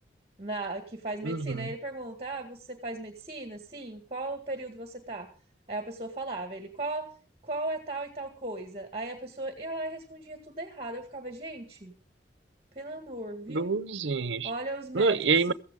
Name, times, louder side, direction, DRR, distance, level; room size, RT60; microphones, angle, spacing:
voice 1, 0.4-5.3 5.7-7.1 7.4-11.9 12.7-13.7 14.4-15.2, right 2 dB, 35° right, 1.8 m, -37 dB
voice 2, 1.2-1.7 13.5-14.5 14.9-15.5, right 4 dB, 85° right, 0.8 m, -27 dB
16.0 x 15.0 x 3.7 m
head